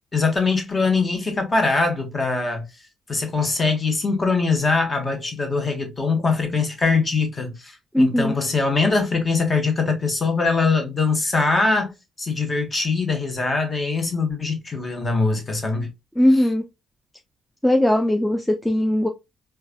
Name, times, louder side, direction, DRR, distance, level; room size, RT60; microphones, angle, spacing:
voice 1, 0.1-2.6 3.1-15.9 16.3-16.5, left 4 dB, 30° left, 1.2 m, -22 dB
voice 2, 7.9-8.3 16.2-16.6 17.6-19.1, left 1 dB, 5° left, 0.5 m, -19 dB
4.6 x 2.3 x 2.2 m
figure-of-eight pair, 45°, 0 cm